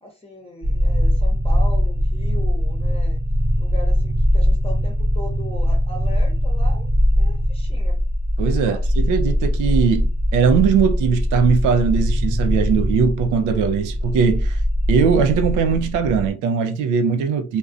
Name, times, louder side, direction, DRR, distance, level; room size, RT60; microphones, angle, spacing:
voice 1, 0.0-3.2 3.6-8.0 8.5-8.9, left 1 dB, 20° left, 0.7 m, -38 dB
sound 1, 0.6-16.3, equal, 30° right, 0.8 m, -21 dB
voice 2, 8.4-14.6 14.9-17.6, right 6 dB, 85° right, 0.5 m, -20 dB
2.4 x 2.1 x 2.4 m
cardioid pair, 90°, 30 cm